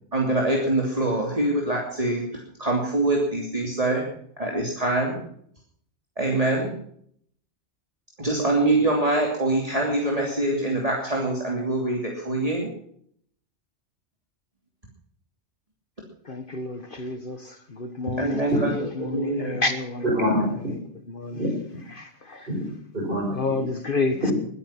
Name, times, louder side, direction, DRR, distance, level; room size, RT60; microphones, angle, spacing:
voice 1, 0.1-2.2 2.6-4.0 4.4-5.2 6.2-6.7 8.2-12.7 18.2-19.6, right 2 dB, 30° right, -1 dB, 3.1 m, -24 dB
voice 2, 16.3-18.5 19.0-20.1 21.1-21.4 21.9-22.5 23.3-24.3, left 3 dB, 45° left, 9 dB, 1.4 m, -29 dB
voice 3, 20.0-20.7 21.3-21.8 22.5-22.7 22.9-23.4 24.2-24.3, equal, 45° right, -4 dB, 4.9 m, -25 dB
21.5 x 10.0 x 5.8 m, 0.64 s
omnidirectional pair, 1.2 m